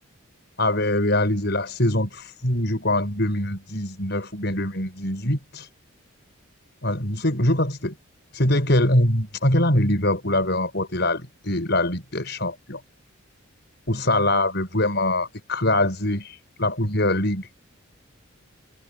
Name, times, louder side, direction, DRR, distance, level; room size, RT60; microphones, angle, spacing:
voice 1, 0.6-5.7 6.8-7.9 8.3-12.8 13.9-17.5, left 1 dB, 50° left, 7.2 m, -23 dB
head